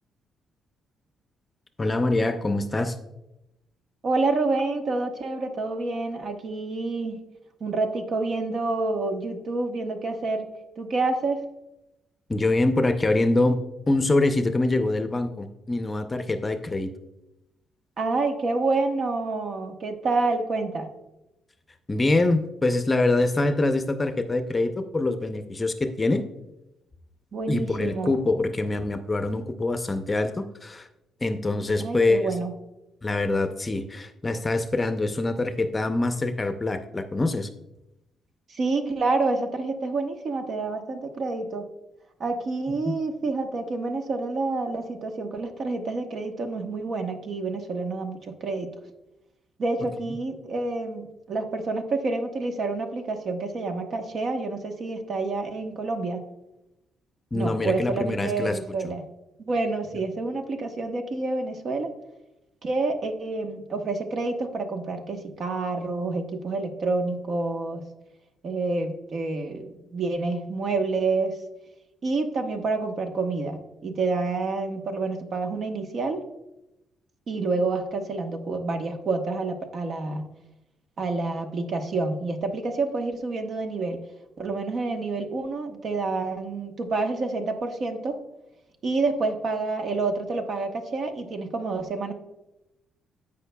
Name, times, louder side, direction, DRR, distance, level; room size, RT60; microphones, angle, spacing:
voice 1, 1.8-3.0 12.3-13.6 13.9-16.9 21.9-26.2 27.5-30.9 31.2-32.3 33.0-37.5 42.9-43.0 50.0-50.2 57.3-58.6, left 2 dB, 25° left, 8 dB, 0.6 m, -24 dB
voice 2, 4.0-7.2 7.6-10.5 10.8-11.4 18.0-20.9 27.3-28.1 31.8-32.5 38.5-41.7 42.2-48.7 49.6-56.2 57.3-59.0 59.4-61.9 62.6-67.8 68.4-71.4 72.0-76.2 77.3-80.3 81.0-84.0 84.4-88.2 88.8-92.1, right 3 dB, 55° right, 5 dB, 1.1 m, -28 dB
15.0 x 5.3 x 2.3 m, 0.92 s
cardioid pair, 90°, 0 cm